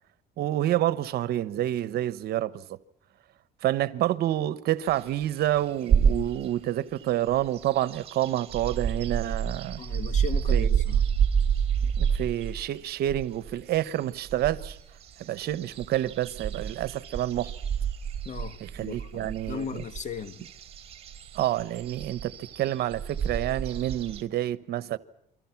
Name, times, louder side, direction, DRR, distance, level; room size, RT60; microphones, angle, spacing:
voice 1, 0.4-2.8 3.6-9.8 10.5-10.8 11.8-14.8 15.2-17.5 18.6-19.8 21.3-25.0, right 13 dB, 70° right, 1.0 m, -28 dB
sound 1, 4.9-6.5 7.0-24.2, right 7 dB, 40° right, 3.3 m, -29 dB
voice 2, 9.8-11.0 18.2-20.4, left 6 dB, 45° left, 1.5 m, -37 dB
29.0 x 24.0 x 6.0 m
cardioid pair, 110°, 17 cm